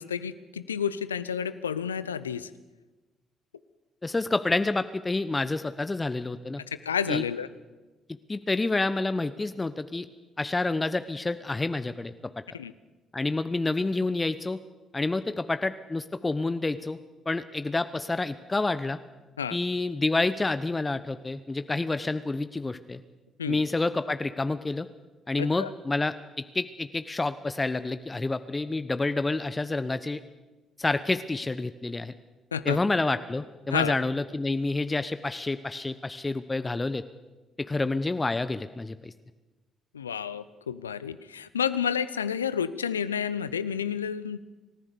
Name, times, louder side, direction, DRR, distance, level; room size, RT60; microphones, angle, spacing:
voice 1, 0.0-2.5 6.8-7.5 12.5-12.7 19.4-19.6 23.4-23.6 25.4-25.7 32.5-32.8 33.7-33.9 39.9-44.4, left 7 dB, 90° left, 15 dB, 0.6 m, -30 dB
voice 2, 4.0-6.6 7.1-7.2 8.3-10.1 10.4-12.4 13.1-14.6 14.9-17.0 17.3-19.0 19.5-23.0 23.5-24.9 25.3-30.2 30.8-32.1 32.6-37.0 37.6-39.1, left 2 dB, 20° left, 12 dB, 1.0 m, -28 dB
28.5 x 14.5 x 6.8 m, 1.2 s
hypercardioid pair, 45°, 0 cm